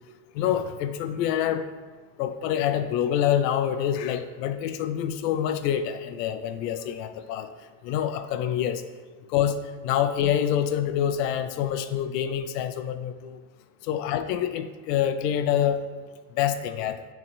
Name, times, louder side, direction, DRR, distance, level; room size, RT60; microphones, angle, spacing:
voice 1, 0.3-1.7 2.2-7.5 7.8-8.8 9.3-9.6 9.8-13.4 13.8-15.8 16.3-17.1, left 10 dB, 85° left, 9 dB, 0.6 m, -26 dB
8.8 x 3.5 x 3.1 m, 1.4 s
hypercardioid pair, 75°, 48 cm